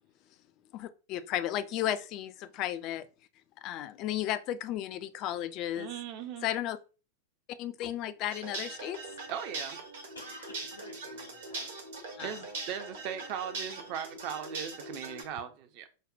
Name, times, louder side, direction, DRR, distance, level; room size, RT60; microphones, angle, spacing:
voice 1, 0.7-3.1 3.6-5.9 6.4-6.8 7.6-9.0 12.2-12.3, left 12 dB, 40° left, 0.3 m, -34 dB
voice 2, 5.8-6.5 9.3-9.8 12.2-15.9, right 8 dB, 45° right, 0.5 m, -38 dB
sound 1, 8.3-15.2, right 3 dB, 60° right, 0.9 m, -41 dB
voice 3, 9.2-9.7 10.1-11.9 12.2-12.6, left 2 dB, 80° left, 1.3 m, -52 dB
5.2 x 2.1 x 2.5 m
figure-of-eight pair, 90°, 0 cm